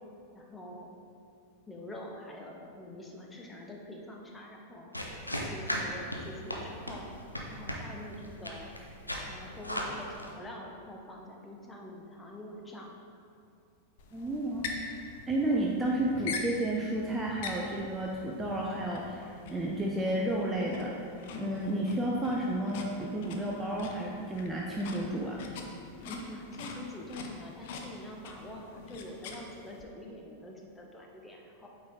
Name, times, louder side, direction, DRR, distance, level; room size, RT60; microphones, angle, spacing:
voice 1, 0.3-0.9 1.7-4.9 5.4-7.1 7.5-8.7 9.3-12.9 26.0-31.7, left 1 dB, 10° left, -1 dB, 0.9 m, -45 dB
sound 1, 4.9-10.3, equal, 85° left, 0.7 m, -37 dB
sound 2, 14.0-29.8, left 4 dB, 50° left, 0.7 m, -44 dB
voice 2, 14.1-14.9 15.3-20.9 21.3-25.4, right 1 dB, 10° right, -3 dB, 0.6 m, -32 dB
8.5 x 4.3 x 3.8 m, 2.4 s
figure-of-eight pair, 90°, 0 cm